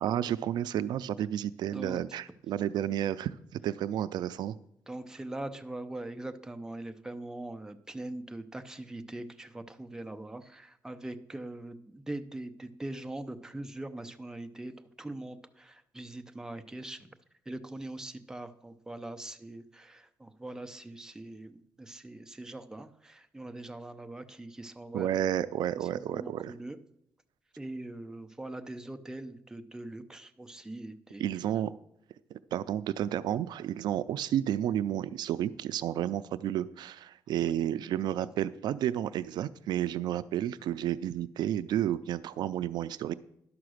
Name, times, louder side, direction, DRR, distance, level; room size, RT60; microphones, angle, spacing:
voice 1, 0.0-4.6 24.9-26.5 31.2-31.7 32.3-43.1, right 11 dB, 75° right, 15 dB, 0.4 m, -31 dB
voice 2, 4.9-17.1 17.5-25.1 25.9-26.8 27.6-31.2 37.4-37.5, right 1 dB, 10° right, 8 dB, 0.6 m, -42 dB
11.0 x 5.8 x 6.4 m, 0.73 s
cardioid pair, 130°, 7 cm